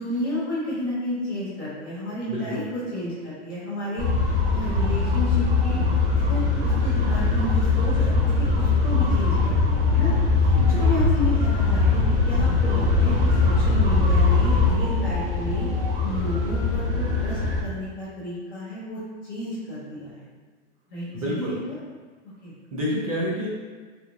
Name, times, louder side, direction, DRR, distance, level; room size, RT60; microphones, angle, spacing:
voice 1, 0.0-5.9 6.3-10.1 10.4-15.7 16.0-19.0 19.3-20.3 20.9-21.8 22.4-22.5, left 1 dB, 20° left, -10 dB, 0.5 m, -31 dB
voice 2, 2.3-2.7 10.5-10.8 21.1-21.6 22.7-23.5, equal, 30° right, -6 dB, 0.5 m, -28 dB
sound 1, 4.0-17.6, left 3 dB, 55° right, 1.1 m, -21 dB
3.3 x 2.9 x 2.5 m, 1.4 s
supercardioid pair, 175°, 36 cm